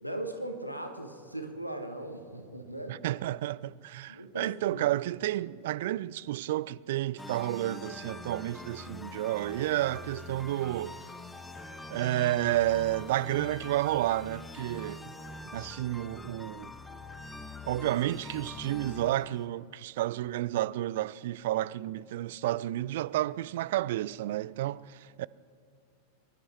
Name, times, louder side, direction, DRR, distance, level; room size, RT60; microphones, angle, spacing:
voice 1, 0.0-3.0 4.1-4.8, right 1 dB, 90° left, 1.5 m, -39 dB
voice 2, 2.9-11.0 11.9-15.1 15.5-16.7 17.7-25.3, right 14 dB, 55° right, 0.3 m, -31 dB
sound 1, 7.2-19.5, left 2 dB, 10° left, 0.9 m, -44 dB
23.5 x 11.0 x 4.6 m
figure-of-eight pair, 90°, 0 cm